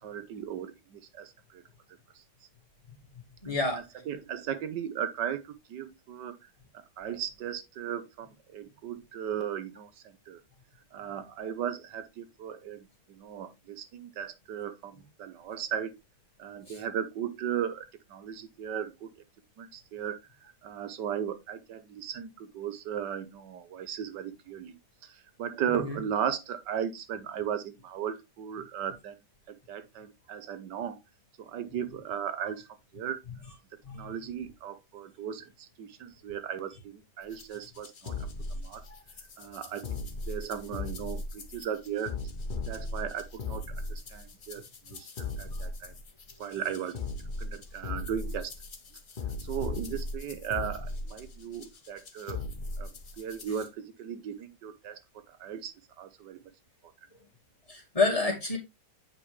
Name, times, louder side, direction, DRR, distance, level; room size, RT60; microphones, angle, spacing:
voice 1, 0.0-1.6 2.1-2.2 4.1-6.4 7.0-10.4 10.9-15.9 16.4-19.1 19.6-29.2 29.5-31.0 31.4-32.7 32.9-33.2 33.9-38.1 38.5-38.8 39.4-42.1 42.6-45.9 46.4-47.0 47.4-48.5 49.4-52.4 52.8-55.0 55.3-56.4, right 9 dB, 80° right, 1.5 m, -36 dB
voice 2, 3.4-3.8 16.7-16.8 25.7-26.0 33.8-34.1 38.9-39.0 45.5-45.6 57.7-58.6, left 3 dB, 20° left, 2.4 m, -29 dB
sound 1, 37.3-53.5, left 2 dB, 40° left, 0.8 m, -38 dB
8.3 x 5.2 x 3.2 m
omnidirectional pair, 1.8 m